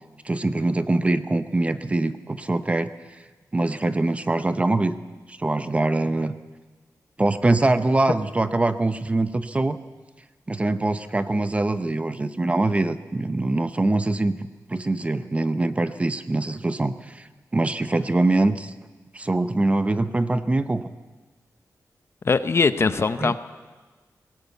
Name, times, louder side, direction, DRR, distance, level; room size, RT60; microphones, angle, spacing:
voice 1, 0.2-2.9 3.5-4.9 5.3-6.3 7.2-9.8 10.5-17.3 17.5-18.7 19.1-20.8 23.2-23.3, right 2 dB, 20° right, 12 dB, 0.7 m, -23 dB
voice 2, 22.2-23.3, left 4 dB, 40° left, 12 dB, 0.8 m, -21 dB
19.0 x 18.5 x 8.3 m, 1.3 s
wide cardioid pair, 160°, 6 cm